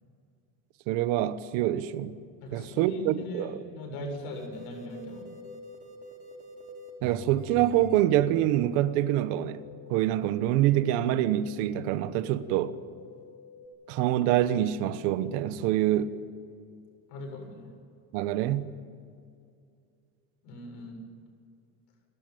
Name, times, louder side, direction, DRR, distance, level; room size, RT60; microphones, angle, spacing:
voice 1, 0.9-2.1 2.5-3.6 7.0-9.6 9.9-12.8 13.9-16.1 18.1-18.7, right 13 dB, 90° right, 1.3 m, -26 dB
voice 2, 2.4-5.3 17.1-17.7 20.4-21.0, left 1 dB, 80° left, 7.8 m, -39 dB
sound 1, 4.3-13.7, left 3 dB, 20° right, 5.2 m, -47 dB
29.0 x 13.0 x 9.2 m
cardioid pair, 125°, 38 cm